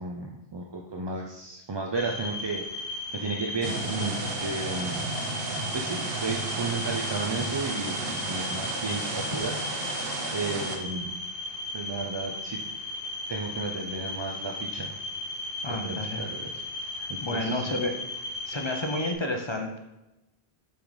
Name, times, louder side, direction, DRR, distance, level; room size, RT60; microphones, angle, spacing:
voice 1, 0.0-5.1 5.4-10.0 10.3-11.1 11.7-12.6 13.3-14.9 15.7-17.8, right 3 dB, 35° right, 0 dB, 0.4 m, -34 dB
sound 1, 1.9-19.1, left 2 dB, 70° left, 1.0 m, -36 dB
sound 2, 3.6-10.8, right 3 dB, 65° right, 1.1 m, -33 dB
voice 2, 15.6-16.2 17.0-17.9 18.4-19.8, left 1 dB, 35° left, 2 dB, 0.6 m, -31 dB
7.0 x 3.9 x 4.8 m, 0.95 s
omnidirectional pair, 1.0 m